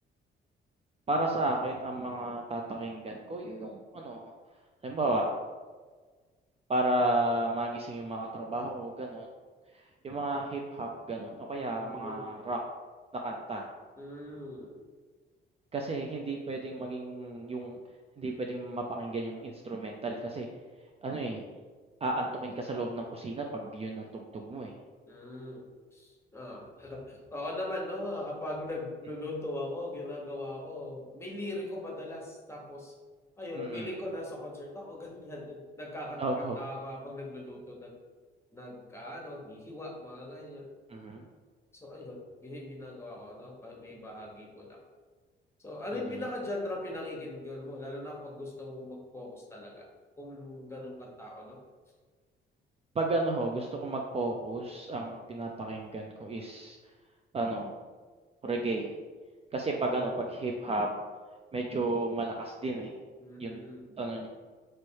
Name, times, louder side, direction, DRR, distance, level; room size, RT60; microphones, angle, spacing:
voice 1, 1.1-4.3 4.8-5.3 6.7-9.3 10.0-12.6 13.1-13.7 15.7-17.8 18.2-20.5 21.0-21.5 22.0-24.7 33.5-33.9 36.2-36.6 40.9-41.3 45.9-46.2 53.0-56.8 57.3-57.8 58.4-58.9 59.5-60.9 61.5-62.9 63.4-63.7 64.0-64.3, right 2 dB, 30° right, 1 dB, 0.4 m, -33 dB
voice 2, 11.8-12.2 14.0-14.8 25.0-32.9 33.4-38.0 38.5-40.7 41.7-44.8 45.6-49.9 50.2-51.6 59.8-60.1 63.2-64.0, left 1 dB, 15° left, -1 dB, 1.2 m, -40 dB
3.1 x 3.0 x 4.5 m, 1.4 s
cardioid pair, 90°, 20 cm